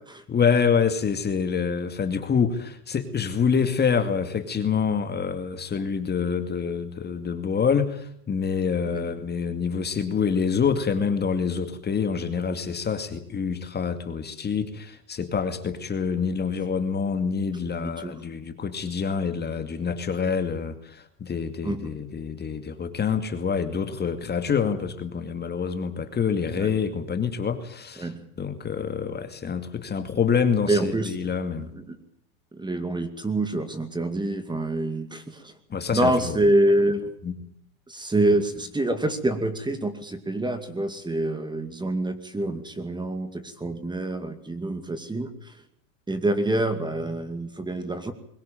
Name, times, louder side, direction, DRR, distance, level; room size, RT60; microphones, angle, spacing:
voice 1, 0.3-28.1 28.4-31.7 35.7-36.4 37.2-37.3, left 6 dB, 20° left, 8 dB, 2.4 m, -26 dB
voice 2, 17.8-18.2 21.6-21.9 26.6-26.7 28.0-28.2 30.7-31.1 31.7-32.0 32.5-35.5 35.9-37.1 37.9-45.5 46.1-48.1, right 1 dB, 10° right, 10 dB, 2.4 m, -26 dB
22.0 x 17.5 x 9.2 m, 0.70 s
supercardioid pair, 115°, 45 cm